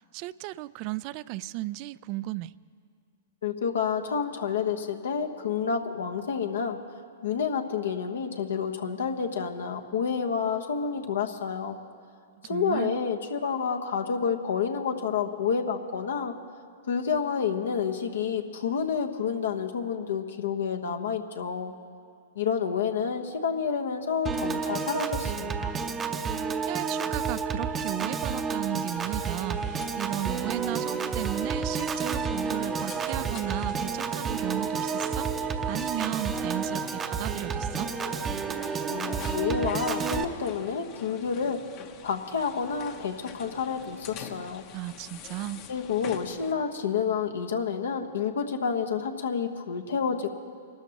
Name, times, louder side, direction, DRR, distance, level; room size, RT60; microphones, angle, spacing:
voice 1, 0.1-2.5 12.4-12.9 26.7-37.9 44.7-45.6, right 16 dB, 45° right, 18 dB, 0.3 m, -35 dB
voice 2, 3.4-6.8 7.2-11.8 12.4-16.4 16.9-21.7 22.3-25.8 38.9-41.6 42.0-44.6 45.7-50.3, left 6 dB, 80° left, 4 dB, 1.2 m, -29 dB
Piano / Organ, 24.3-40.3, right 5 dB, 20° right, 0.7 m, -30 dB
sound 1, 28.9-46.5, left 8 dB, 40° left, 0.9 m, -46 dB
26.5 x 13.0 x 3.0 m, 2.2 s
hypercardioid pair, 115°, 0 cm